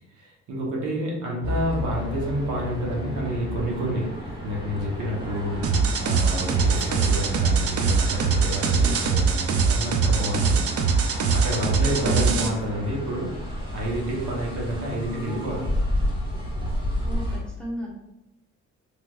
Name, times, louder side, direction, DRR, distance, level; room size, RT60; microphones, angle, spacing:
voice 1, 0.1-4.1 4.4-5.7 6.0-10.6 11.3-13.3 13.7-15.8, right 1 dB, 80° right, -3 dB, 1.0 m, -29 dB
sound 1, 1.4-17.4, left 1 dB, 15° right, 1.2 m, -32 dB
sound 2, 5.6-12.5, right 5 dB, 50° right, 0.5 m, -22 dB
voice 2, 12.0-12.5 17.1-17.9, equal, 5° left, -4 dB, 1.1 m, -33 dB
3.4 x 2.9 x 2.3 m, 0.90 s
cardioid pair, 90°, 30 cm